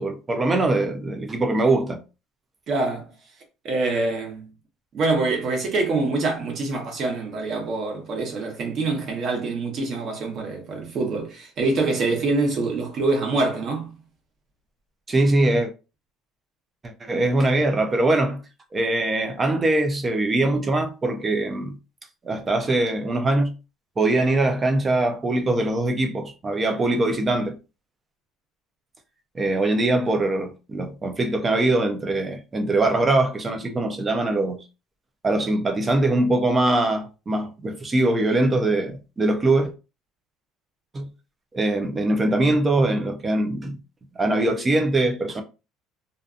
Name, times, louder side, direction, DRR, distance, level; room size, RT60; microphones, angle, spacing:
voice 1, 0.0-2.0 15.1-15.7 17.0-18.4 18.7-21.8 22.3-23.5 24.0-27.6 29.4-34.6 35.2-39.7 40.9-41.1 41.5-43.8 44.2-45.4, right 2 dB, 20° right, 0.4 m, -22 dB
voice 2, 2.7-3.1 3.6-4.5 4.9-13.9, right 3 dB, 40° right, 0.9 m, -25 dB
2.5 x 2.4 x 2.4 m
cardioid pair, 160°, 0 cm